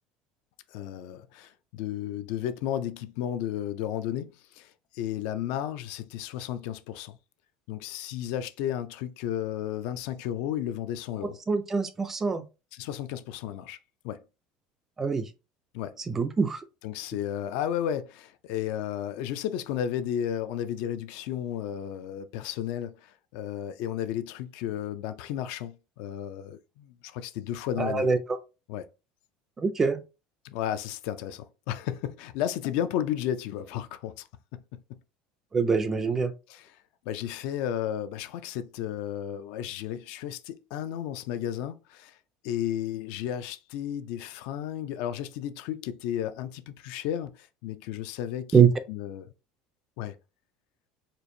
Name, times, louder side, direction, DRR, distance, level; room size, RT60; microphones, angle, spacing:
voice 1, 0.7-7.2 7.7-11.4 12.7-13.8 14.0-14.2 15.7-16.0 16.8-28.1 28.7-28.9 30.4-34.6 36.5-36.8 37.1-42.2 42.4-48.6 48.9-49.3 50.0-50.2, left 10 dB, 60° left, 0.4 m, -33 dB
voice 2, 11.5-12.4 15.0-15.3 16.1-16.6 27.8-28.2 29.6-30.0 35.5-36.3 48.5-48.7, right 6 dB, 15° right, 0.3 m, -24 dB
4.4 x 2.5 x 2.6 m
cardioid pair, 170°, 2 cm